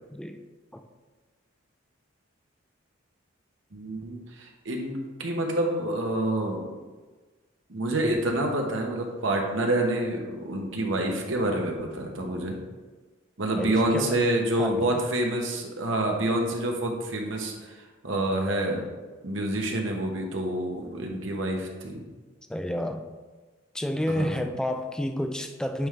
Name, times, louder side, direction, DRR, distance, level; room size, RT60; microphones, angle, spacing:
voice 1, 3.7-6.7 7.7-12.6 13.4-18.8 19.2-22.0 24.2-24.4, right 1 dB, 70° right, 2 dB, 1.0 m, -27 dB
voice 2, 13.6-14.2 14.6-14.9 22.5-23.1 23.7-25.9, left 1 dB, 5° left, 6 dB, 0.3 m, -30 dB
9.3 x 3.6 x 3.2 m, 1.3 s
head